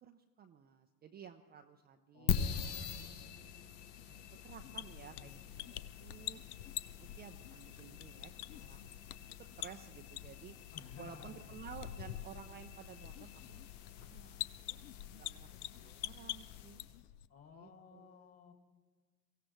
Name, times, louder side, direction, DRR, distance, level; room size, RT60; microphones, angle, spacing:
voice 1, 0.0-3.0 4.1-5.4 5.7-6.4 6.8-8.8 9.4-10.6 11.0-13.6 14.0-16.8 17.5-18.2, right 8 dB, 20° right, 6 dB, 0.5 m, -54 dB
voice 2, 2.1-3.3 5.1-5.5 10.7-11.6 17.3-18.5, left 6 dB, 30° left, 4 dB, 2.5 m, -55 dB
sound 1, 2.3-17.0, left 7 dB, 50° left, 1.2 m, -44 dB
sound 2, 4.5-17.3, left 14 dB, 70° left, 0.6 m, -47 dB
23.5 x 15.5 x 3.1 m, 1.4 s
hypercardioid pair, 85°, 48 cm